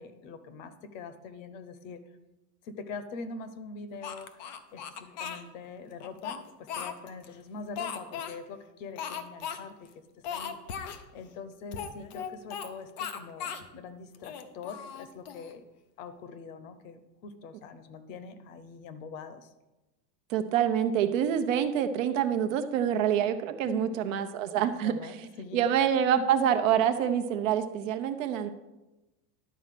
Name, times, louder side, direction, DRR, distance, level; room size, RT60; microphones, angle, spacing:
voice 1, 0.0-2.0 2.6-9.9 10.3-15.6 16.0-19.5 23.6-24.0 24.5-25.7 26.2-26.3, left 4 dB, 50° left, 12 dB, 0.9 m, -43 dB
Speech, 4.0-5.4 6.0-7.3 7.8-8.4 9.0-9.6 9.8-9.9 10.2-11.0 11.7-12.7 13.0-13.7 14.1-15.5, left 7 dB, 30° left, 0.4 m, -37 dB
voice 2, 20.3-24.9 25.5-28.5, right 9 dB, 50° right, 8 dB, 0.8 m, -26 dB
11.0 x 4.3 x 7.5 m, 1.0 s
supercardioid pair, 160°, 49 cm